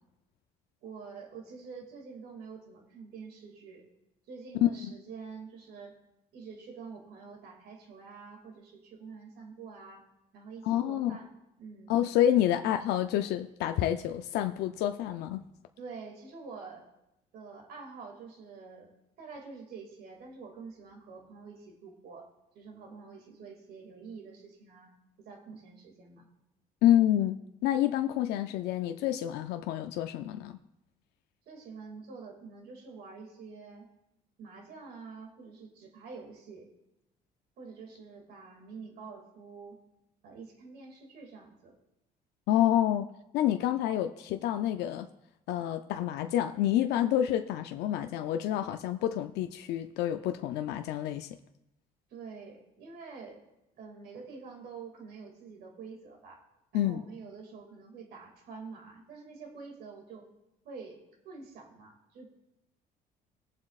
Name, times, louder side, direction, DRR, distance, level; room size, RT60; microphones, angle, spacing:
voice 1, 0.8-3.8 4.3-6.0 6.3-10.0 10.3-11.9 12.2-12.6 15.8-16.9 17.3-18.9 19.2-22.3 22.5-24.9 25.2-26.3 31.5-33.9 34.4-36.7 37.6-39.8 40.2-41.7 52.1-53.4 53.8-56.4 56.7-60.3 60.6-61.0 61.2-62.3, right 5 dB, 75° right, 2 dB, 2.2 m, -47 dB
voice 2, 4.6-4.9 10.6-11.2 11.9-15.4 26.8-30.6 42.5-43.1 43.3-45.1 45.5-51.3 56.7-57.0, left 12 dB, 80° left, 7 dB, 0.5 m, -28 dB
20.5 x 7.4 x 2.4 m, 0.90 s
cardioid pair, 110°, 17 cm